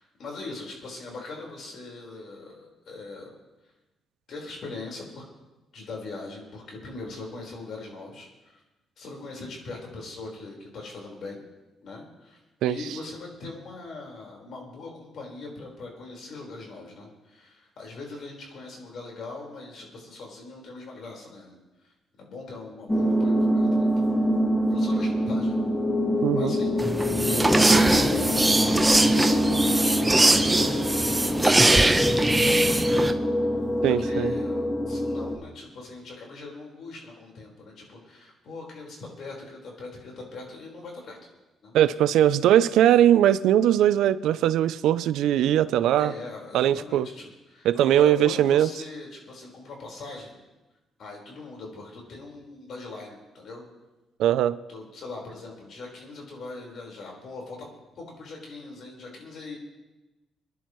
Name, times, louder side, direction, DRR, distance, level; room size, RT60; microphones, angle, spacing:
voice 1, 0.0-3.3 4.3-5.2 5.7-8.6 9.0-11.4 11.8-12.4 12.7-21.6 21.8-21.9 22.2-24.1 24.7-25.7 26.3-26.8 27.3-29.8 30.5-33.2 33.5-41.2 41.6-41.7 46.0-50.5 51.0-53.6 54.7-57.7 57.9-59.6, left 3 dB, 65° left, -1 dB, 4.5 m, -41 dB
sound 1, 22.9-35.4, equal, 15° left, 1.7 m, -24 dB
voice 2, 26.2-26.5 33.8-34.3 41.7-46.1 46.5-47.1 47.6-48.7 54.2-54.6, right 11 dB, 85° right, 15 dB, 0.4 m, -20 dB
sound 2, 26.8-33.1, right 2 dB, 15° right, 0.9 m, -22 dB
25.5 x 11.0 x 3.1 m, 1.1 s
cardioid pair, 90°, 0 cm